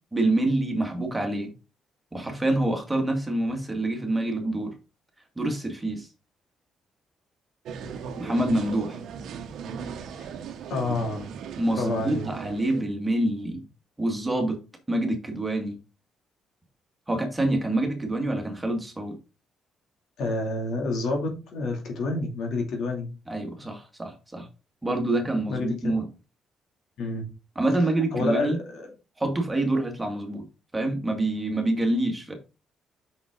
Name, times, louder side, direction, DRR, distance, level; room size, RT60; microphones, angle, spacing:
voice 1, 0.1-1.5 2.1-4.7 5.4-6.1 8.2-9.0 11.6-13.6 14.0-14.6 14.9-15.8 17.1-19.1 23.3-24.5 24.8-26.0 27.6-28.6 29.2-30.5 30.7-32.3, right 1 dB, 15° right, 2.1 m, -26 dB
sound 1, 7.7-12.8, right 6 dB, 75° right, 0.9 m, -37 dB
voice 2, 10.7-11.3 11.8-12.2 20.2-23.1 25.5-25.7 27.0-27.3 28.1-28.9, left 2 dB, 75° left, 2.6 m, -28 dB
6.1 x 5.8 x 3.8 m
cardioid pair, 90°, 0 cm